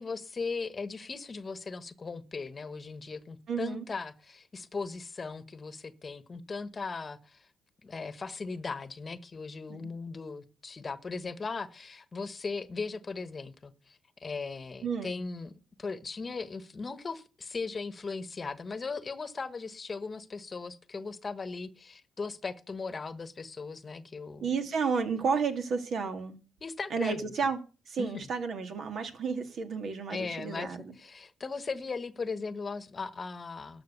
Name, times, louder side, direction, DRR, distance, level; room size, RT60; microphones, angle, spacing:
voice 1, 0.0-7.5 7.8-15.5 15.8-24.5 26.6-27.3 28.0-28.3 30.1-33.8, left 4 dB, 35° left, 1.2 m, -38 dB
voice 2, 3.5-3.8 9.7-9.9 14.8-15.2 24.4-26.4 26.9-27.6 27.9-30.9, right 5 dB, 60° right, 2.2 m, -32 dB
13.0 x 6.2 x 8.2 m
cardioid pair, 90°, 0 cm